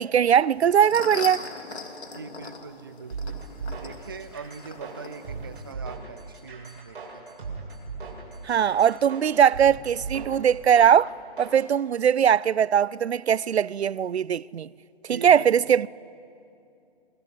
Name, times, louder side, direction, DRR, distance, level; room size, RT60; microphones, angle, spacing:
voice 1, 0.0-1.5 8.4-11.1 11.4-14.7 15.0-15.9, right 8 dB, 85° right, 0.6 m, -20 dB
sound 1, 0.6-5.7, left 3 dB, 90° left, 3.3 m, -40 dB
voice 2, 2.2-3.4 3.8-7.2 15.1-15.6, right 5 dB, 20° right, 0.5 m, -41 dB
sound 2, 3.1-11.6, right 4 dB, 55° right, 7.8 m, -38 dB
27.0 x 21.0 x 7.8 m
hypercardioid pair, 165°, 32 cm